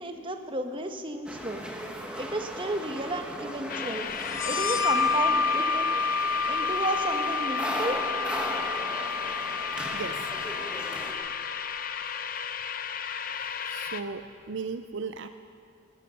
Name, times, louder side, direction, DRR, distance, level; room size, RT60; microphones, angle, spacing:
voice 1, 0.0-1.6 2.2-4.1 4.4-5.9 6.5-8.0, right 2 dB, 25° right, 6 dB, 0.9 m, -32 dB
sound 1, 1.3-11.1, equal, 5° right, 1.1 m, -38 dB
sound 2, 3.7-14.0, left 7 dB, 45° left, 0.6 m, -34 dB
sound 3, 4.3-11.6, left 4 dB, 65° left, 1.0 m, -29 dB
voice 2, 9.9-10.3 13.7-15.3, right 5 dB, 60° right, 10 dB, 0.4 m, -36 dB
16.5 x 12.0 x 6.8 m, 2.4 s
head